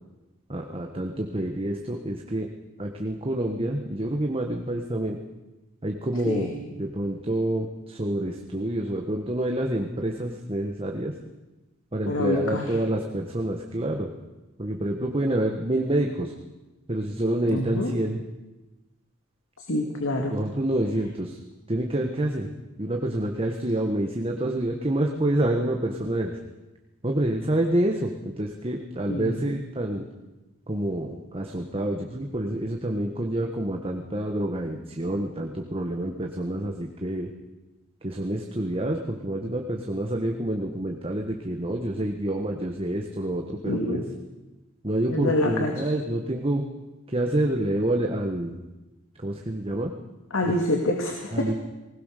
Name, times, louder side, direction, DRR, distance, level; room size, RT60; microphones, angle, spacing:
voice 1, 0.5-2.5 2.8-5.2 5.8-11.1 11.9-14.1 14.6-16.3 16.9-18.2 20.3-21.4 21.7-22.5 22.8-26.4 27.0-30.1 30.7-37.3 38.0-44.0 44.8-46.6 47.1-48.6 49.2-49.9 51.3-51.5, right 1 dB, 25° right, 2 dB, 1.5 m, -27 dB
voice 2, 12.1-12.7 17.5-17.9 19.6-20.4 29.1-29.4 43.7-44.0 45.1-45.9 50.3-51.5, left 1 dB, 75° left, 2 dB, 2.4 m, -26 dB
20.0 x 19.5 x 6.7 m, 1.1 s
head